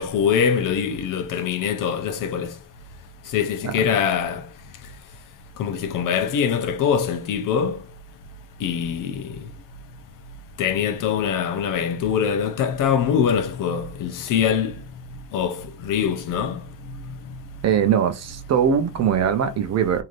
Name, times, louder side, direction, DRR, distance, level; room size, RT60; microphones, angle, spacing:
voice 1, 0.0-2.5 3.3-4.4 5.6-7.8 8.6-9.2 10.6-14.7 15.3-16.6, left 7 dB, 50° left, 0.6 m, -23 dB
voice 2, 17.6-20.0, right 8 dB, 40° right, 0.6 m, -21 dB
3.2 x 2.7 x 2.5 m
cardioid pair, 115°, 42 cm